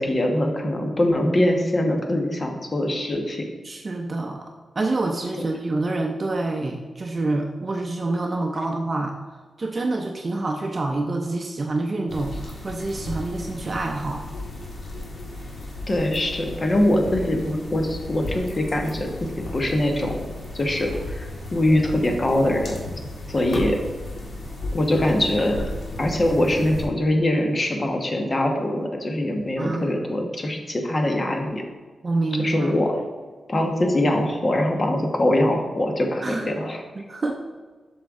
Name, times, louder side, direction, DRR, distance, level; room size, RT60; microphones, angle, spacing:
voice 1, 0.0-3.4 15.9-20.2 20.5-22.8 23.3-23.8 24.7-25.7 26.0-31.6 32.4-32.9 33.5-36.8, left 1 dB, 35° left, 3 dB, 1.2 m, -23 dB
voice 2, 3.6-9.1 9.6-14.2 29.6-30.0 32.0-32.7 36.2-36.5 37.0-37.3, right 2 dB, 35° right, 2 dB, 0.6 m, -27 dB
sound 1, 12.1-26.8, left 2 dB, 70° left, 1.9 m, -35 dB
7.4 x 6.4 x 3.6 m, 1.4 s
wide cardioid pair, 105°, 0 cm